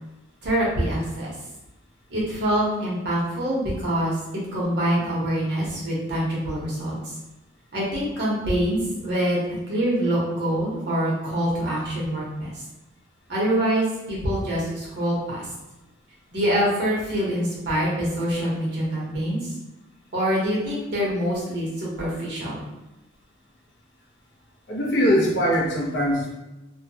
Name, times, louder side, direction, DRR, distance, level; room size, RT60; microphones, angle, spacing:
voice 1, 0.4-1.3 2.1-4.2 4.5-7.0 7.7-9.4 9.7-12.5 13.3-15.5 16.3-19.5 20.1-22.6, equal, 60° right, -6 dB, 1.0 m, -25 dB
voice 2, 24.7-26.3, equal, 65° left, -3 dB, 0.7 m, -21 dB
2.7 x 2.2 x 2.7 m, 1.0 s
head